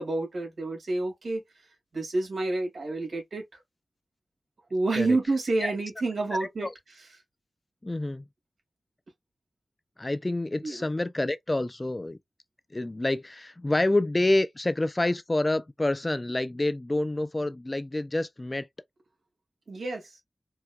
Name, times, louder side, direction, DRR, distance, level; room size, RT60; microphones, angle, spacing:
voice 1, 0.0-1.4 1.9-3.6 4.7-6.7 10.6-10.8 19.7-20.2, right 2 dB, 80° right, 1.9 m, -29 dB
voice 2, 7.8-8.2 10.0-12.2 12.7-18.7, left 2 dB, 30° left, 0.4 m, -27 dB
4.5 x 2.2 x 2.3 m
cardioid pair, 55°, 0 cm